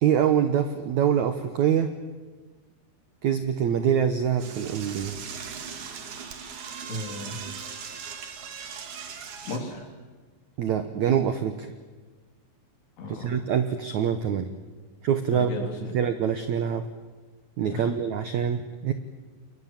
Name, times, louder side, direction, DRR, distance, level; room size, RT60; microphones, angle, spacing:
voice 1, 0.0-1.9 3.2-5.2 10.6-11.7 13.1-14.5 15.0-15.5 15.9-16.9 17.6-18.9, right 8 dB, 75° right, 9 dB, 1.7 m, -25 dB
Door / Toilet flush, 4.4-9.6, right 6 dB, 55° right, 3.1 m, -39 dB
voice 2, 6.9-7.4 9.5-9.9 13.0-13.3 15.3-15.9 17.7-17.9, left 1 dB, 70° left, 2 dB, 5.8 m, -35 dB
29.0 x 22.5 x 7.5 m, 1.4 s
omnidirectional pair, 4.9 m